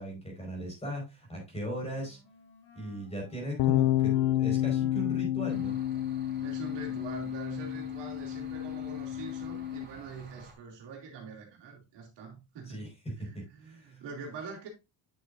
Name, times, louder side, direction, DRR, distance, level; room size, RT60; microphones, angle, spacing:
voice 1, 0.0-2.2 2.7-5.8 12.7-14.0, equal, 15° left, 4.5 m, -38 dB
Wind instrument woodwind instrument, 1.5-7.1, left 2 dB, 40° left, 5.0 m, -56 dB
sound 1, 3.6-9.8, left 13 dB, 75° left, 0.6 m, -30 dB
sound 2, 5.5-10.5, right 2 dB, 25° right, 3.9 m, -52 dB
voice 2, 6.4-12.8 13.2-14.7, right 5 dB, 70° right, 2.9 m, -44 dB
9.2 x 6.6 x 2.5 m
cardioid pair, 150°, 44 cm